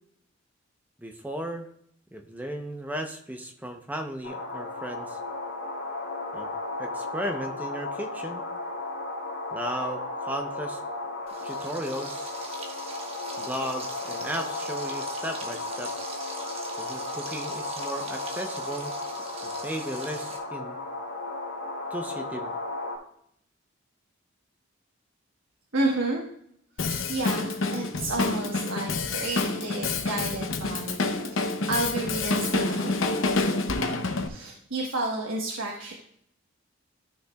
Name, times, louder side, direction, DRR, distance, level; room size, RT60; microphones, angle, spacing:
voice 1, 1.0-1.7 2.1-5.2 6.3-6.5 6.8-8.4 9.5-10.8 11.4-12.4 13.4-15.9 16.8-18.9 19.6-20.8 21.9-22.5 33.9-34.2, equal, 10° right, 5 dB, 0.7 m, -35 dB
sound 1, 4.2-23.0, left 2 dB, 55° left, 2.3 m, -35 dB
Frying (food), 11.3-20.4, right 3 dB, 30° right, 1.2 m, -42 dB
voice 2, 25.7-26.3 26.8-33.0 34.2-35.9, right 2 dB, 90° right, -1 dB, 1.2 m, -31 dB
Drum kit, 26.8-34.3, left 3 dB, 80° left, 0.8 m, -28 dB
13.0 x 6.5 x 2.3 m, 0.70 s
head